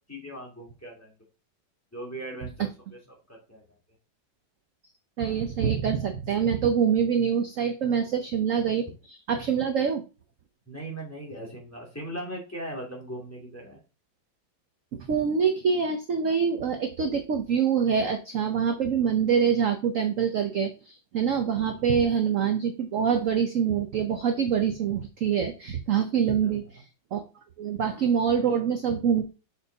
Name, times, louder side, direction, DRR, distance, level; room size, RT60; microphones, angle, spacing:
voice 1, 0.1-1.1 1.9-3.7 10.7-13.8 26.4-26.7, right 1 dB, 10° left, -2 dB, 2.3 m, -39 dB
voice 2, 5.2-10.0 14.9-26.8 27.1-27.2 27.6-29.2, right 7 dB, 60° right, 7 dB, 0.9 m, -25 dB
6.5 x 4.4 x 3.9 m, 0.31 s
omnidirectional pair, 1.9 m